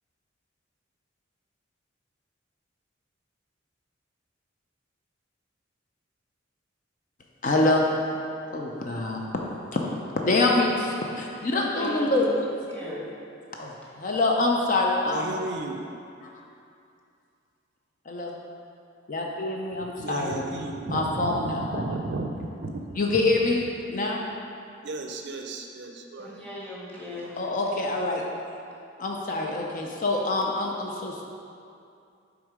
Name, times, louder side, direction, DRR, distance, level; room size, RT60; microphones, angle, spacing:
voice 1, 7.4-7.9 8.5-9.2 10.2-12.3 13.6-13.7 14.0-15.3 18.1-18.3 19.1-20.4 20.9-21.8 23.0-23.6 23.9-24.2 27.4-28.2 29.0-31.2, left 2 dB, 40° left, 0 dB, 0.5 m, -25 dB
voice 2, 11.7-12.3 12.7-13.1 26.2-27.4, left 1 dB, 10° left, -7 dB, 1.3 m, -38 dB
voice 3, 15.1-15.8 20.0-23.2 24.8-26.5, right 2 dB, 60° right, 3 dB, 0.4 m, -34 dB
6.5 x 3.6 x 4.8 m, 2.5 s
head